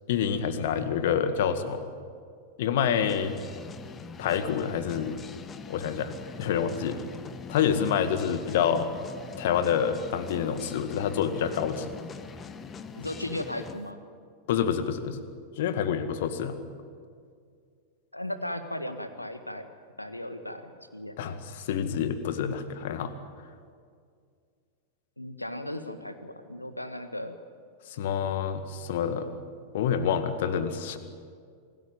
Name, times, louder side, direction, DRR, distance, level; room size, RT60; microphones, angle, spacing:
voice 1, 0.1-1.8 2.6-3.4 4.2-5.2 5.7-6.1 6.4-7.0 7.5-8.9 9.4-11.9 14.5-15.2 15.6-16.6 21.2-23.1 27.9-29.3 29.7-31.0, left 8 dB, 55° left, 10 dB, 1.9 m, -27 dB
sound 1, 3.1-13.8, left 5 dB, 20° left, 1.5 m, -43 dB
voice 2, 13.0-14.0 18.1-19.7 20.0-21.4 25.2-27.4, left 1 dB, 85° left, 9 dB, 1.7 m, -36 dB
27.0 x 18.5 x 9.3 m, 2.2 s
figure-of-eight pair, 90°, 0 cm